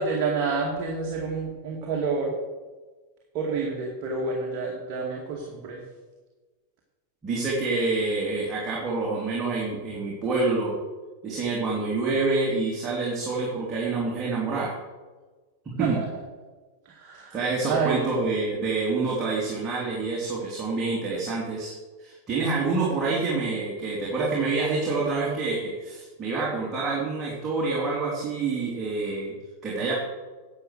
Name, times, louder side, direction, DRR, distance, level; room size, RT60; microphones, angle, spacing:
voice 1, 0.0-2.3 3.3-5.8 15.8-16.2 16.9-18.1, right 4 dB, 40° right, -1 dB, 2.1 m, -29 dB
voice 2, 7.2-10.8 11.2-14.8 15.8-16.0 17.3-21.7 22.0-29.3 29.6-30.0, right 3 dB, 25° right, -5 dB, 3.2 m, -27 dB
11.5 x 7.5 x 6.7 m, 1.3 s
figure-of-eight pair, 90°, 0 cm